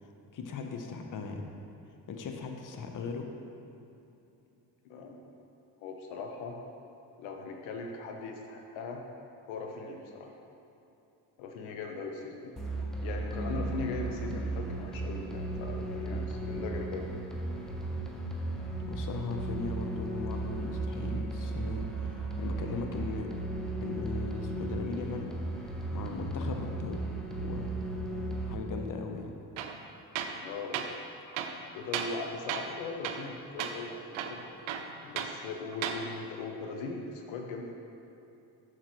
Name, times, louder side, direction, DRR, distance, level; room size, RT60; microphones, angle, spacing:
voice 1, 0.0-1.4 2.1-3.3 18.9-23.3 23.8-25.3 25.9-27.1 27.4-27.7 28.4-29.3, left 4 dB, 40° left, 3 dB, 0.8 m, -38 dB
voice 2, 4.8-5.2 5.8-6.6 7.2-9.0 9.5-10.3 11.4-12.5 13.0-17.1 30.4-31.0 31.7-34.4 35.0-37.7, left 4 dB, 75° left, 2 dB, 0.8 m, -39 dB
sound 1, 12.6-28.6, right 2 dB, ahead, 0.9 m, -35 dB
Tools, 29.6-29.8 30.2-30.4 30.7-30.9 31.3-32.2 32.5-32.8 33.0-33.3 33.6-33.8 34.1-35.4 35.7-36.0, right 8 dB, 75° right, 0.6 m, -35 dB
7.4 x 6.4 x 3.1 m, 2.8 s
supercardioid pair, 60°, 48 cm